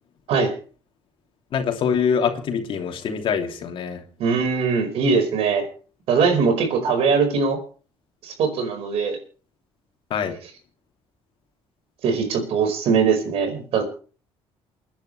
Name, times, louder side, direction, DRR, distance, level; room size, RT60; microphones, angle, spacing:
voice 1, 1.5-4.0 10.1-10.4, left 7 dB, 55° left, 3 dB, 2.9 m, -24 dB
voice 2, 4.2-5.7 6.1-7.6 8.2-9.2 12.0-13.8, right 5 dB, 70° right, 6 dB, 4.9 m, -21 dB
28.5 x 10.5 x 3.3 m, 0.39 s
cardioid pair, 120°, 11 cm